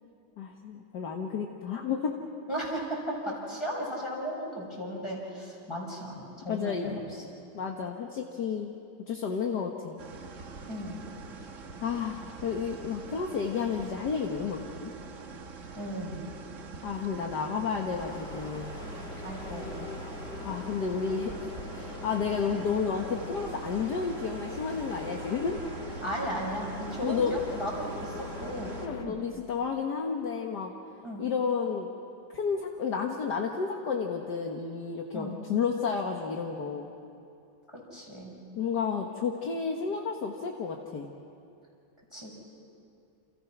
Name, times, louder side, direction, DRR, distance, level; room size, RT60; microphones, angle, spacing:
voice 1, 0.4-2.2 6.5-7.0 7.5-8.8 9.1-10.0 11.8-14.9 16.8-18.8 20.4-21.4 21.7-25.6 27.0-27.3 28.8-30.7 31.2-31.9 32.3-36.9 38.6-41.1, left 6 dB, 60° left, 1 dB, 1.9 m, -31 dB
voice 2, 2.5-7.0 10.7-11.0 15.7-16.2 19.2-19.9 22.5-22.6 26.0-28.7 29.0-29.1 31.0-31.2 35.1-35.4 37.7-38.3 42.1-42.4, equal, 15° left, -3 dB, 6.6 m, -36 dB
sound 1, 10.0-28.9, right 4 dB, 45° right, 1.5 m, -45 dB
sound 2, 18.0-29.0, left 2 dB, 30° left, 2.5 m, -41 dB
29.0 x 29.0 x 6.0 m, 2.6 s
omnidirectional pair, 2.1 m